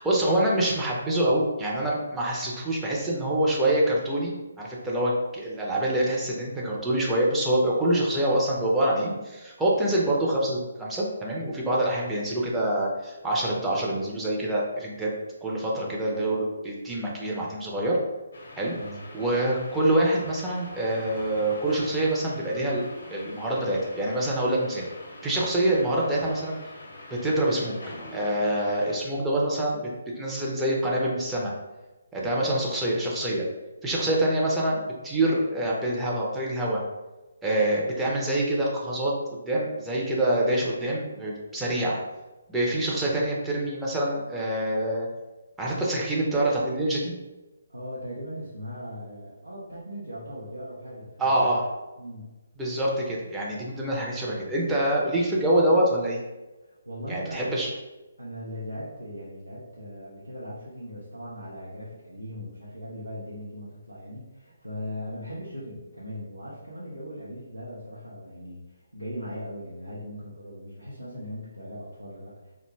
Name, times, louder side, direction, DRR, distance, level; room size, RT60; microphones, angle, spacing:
voice 1, 0.0-15.1 15.4-18.0 18.6-18.7 19.1-22.8 23.1-24.8 25.2-26.6 27.1-27.7 28.1-29.9 30.2-31.5 32.1-33.5 33.8-36.8 37.4-39.1 39.5-42.0 42.5-45.1 45.6-47.1 51.2-51.7 52.6-56.2 57.1-57.7, right 1 dB, 10° right, -4 dB, 0.5 m, -25 dB
sound 1, 18.3-29.0, left 1 dB, 60° left, 0.6 m, -44 dB
voice 2, 47.7-51.5 52.0-52.3 56.6-57.5 58.2-72.5, equal, 90° right, -8 dB, 0.6 m, -39 dB
2.5 x 2.2 x 3.0 m, 1.1 s
figure-of-eight pair, 140°, 0 cm